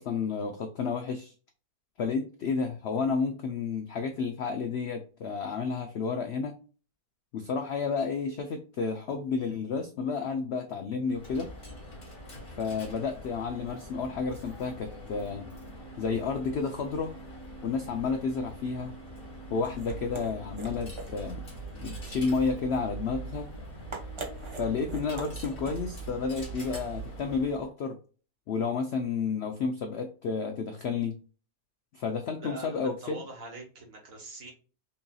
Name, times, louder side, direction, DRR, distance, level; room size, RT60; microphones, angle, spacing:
voice 1, 0.0-1.3 2.0-6.6 7.3-11.5 12.6-15.5 16.0-17.1 17.6-18.9 19.5-21.4 21.8-23.5 24.6-28.0 28.5-31.2 31.9-33.2, left 5 dB, 70° left, 6 dB, 0.6 m, -31 dB
Coin (dropping), 11.0-27.7, left 1 dB, 40° left, 1.6 m, -45 dB
sound 1, 19.3-27.5, right 6 dB, 25° right, 0.6 m, -42 dB
voice 2, 32.4-34.5, right 3 dB, 60° right, 1 dB, 1.7 m, -44 dB
5.5 x 2.7 x 2.2 m, 0.37 s
omnidirectional pair, 1.6 m